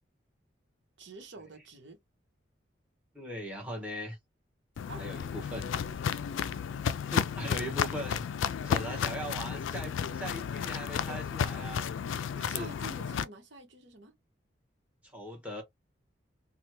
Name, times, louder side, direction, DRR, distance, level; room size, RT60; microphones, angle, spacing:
voice 1, 1.0-2.0 4.9-5.1 12.5-14.2, right 3 dB, 70° right, 1.1 m, -47 dB
voice 2, 3.1-4.2 5.0-5.7 7.1-8.2 8.6-11.9 12.3-12.7 15.1-15.6, equal, 5° right, 1.3 m, -39 dB
Walk footsteps, 4.8-13.2, left 7 dB, 80° left, 0.3 m, -33 dB
3.3 x 2.3 x 2.9 m
head